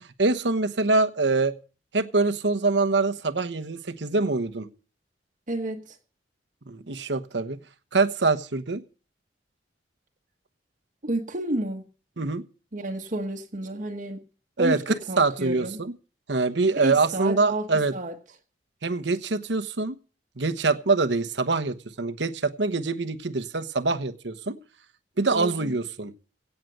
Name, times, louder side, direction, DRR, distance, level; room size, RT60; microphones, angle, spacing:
voice 1, 0.0-1.5 1.9-4.7 6.7-7.6 7.9-8.8 12.2-12.4 14.6-15.9 16.3-17.9 18.8-20.0 20.4-24.6 25.2-26.1, right 3 dB, 70° right, 1.1 m, -24 dB
voice 2, 5.5-6.0 11.0-11.8 12.7-14.2 14.6-15.8 16.8-18.2 25.3-25.7, right 1 dB, 45° right, 1.2 m, -31 dB
17.0 x 6.8 x 7.8 m
head